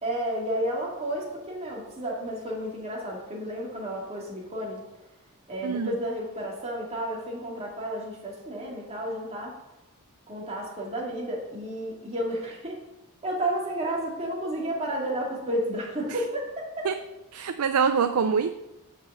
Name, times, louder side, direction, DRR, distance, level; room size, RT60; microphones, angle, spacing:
voice 1, 0.0-4.8 5.5-9.5 10.3-12.8 13.2-16.9, right 1 dB, 30° right, -3 dB, 2.4 m, -32 dB
voice 2, 17.3-18.5, right 6 dB, 80° right, 9 dB, 0.4 m, -25 dB
6.6 x 6.1 x 7.4 m, 0.97 s
head